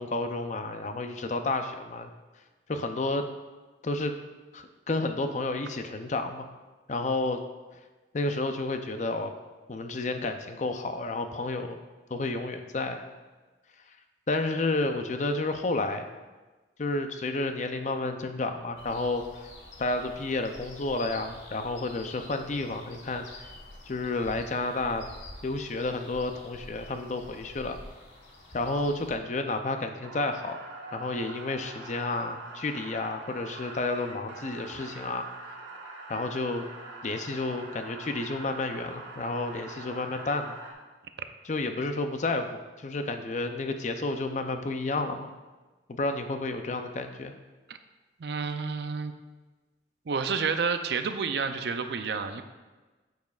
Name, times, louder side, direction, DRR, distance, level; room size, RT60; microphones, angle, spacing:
voice 1, 0.0-2.1 2.7-3.2 3.8-4.1 4.5-6.5 6.9-7.4 8.1-9.3 9.7-11.8 12.1-13.0 14.3-16.1 16.8-19.5 19.8-23.5 23.9-25.0 25.4-27.8 28.5-30.6 30.9-35.3 36.1-36.6 37.0-40.6 41.4-45.3 45.9-47.3, left 2 dB, 40° left, 7 dB, 0.5 m, -31 dB
sound 1, 18.8-29.2, left 1 dB, 85° left, 1.2 m, -48 dB
sound 2, 30.0-40.7, right 3 dB, 85° right, 1.4 m, -44 dB
voice 2, 48.2-49.1 50.1-52.4, right 5 dB, 65° right, 8 dB, 0.5 m, -30 dB
9.1 x 7.2 x 2.4 m, 1.2 s
head